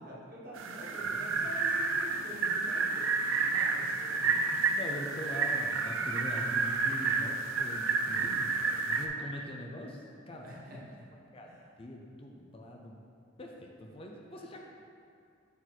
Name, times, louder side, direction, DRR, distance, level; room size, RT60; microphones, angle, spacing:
voice 1, 0.0-4.3 10.4-11.1 11.4-11.7, equal, 50° right, -6 dB, 1.4 m, -47 dB
sound 1, 0.6-9.1, right 4 dB, 85° right, 0.5 m, -30 dB
voice 2, 1.0-1.5 3.5-3.7 4.2-10.5 11.3-11.5 11.8-13.0 13.4-14.6, equal, 30° left, 0 dB, 0.5 m, -43 dB
6.8 x 4.0 x 4.4 m, 2.5 s
head